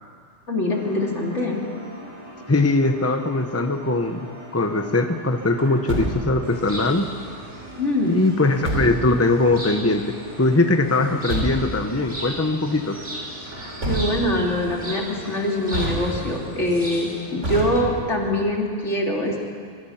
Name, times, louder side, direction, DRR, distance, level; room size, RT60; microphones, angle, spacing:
voice 1, 0.5-1.6 7.8-8.2 13.8-19.4, left 1 dB, 75° left, -1 dB, 3.4 m, -24 dB
sound 1, 0.7-18.5, equal, 20° right, 7.0 m, -43 dB
voice 2, 2.5-4.3 4.5-7.1 8.0-13.0, left 2 dB, 15° left, 6 dB, 1.0 m, -21 dB
Truck, 5.6-6.5 8.4-9.2 10.9-11.9 13.5-14.5 15.7-16.5 17.4-18.3, right 1 dB, 75° right, 3.9 m, -28 dB
sound 2, 6.4-17.3, equal, 55° right, 6.5 m, -37 dB
24.5 x 23.5 x 5.8 m, 2.1 s
omnidirectional pair, 1.2 m